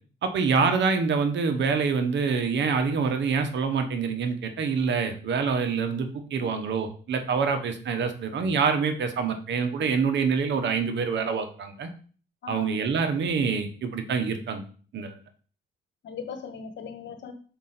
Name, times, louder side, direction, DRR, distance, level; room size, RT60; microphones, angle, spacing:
voice 1, 0.2-11.9 12.5-14.6 14.9-15.2, right 5 dB, 65° right, 7 dB, 1.2 m, -26 dB
voice 2, 12.4-12.8 16.0-17.3, left 5 dB, 65° left, 8 dB, 1.3 m, -38 dB
6.1 x 4.8 x 4.3 m, 0.41 s
cardioid pair, 90°, 20 cm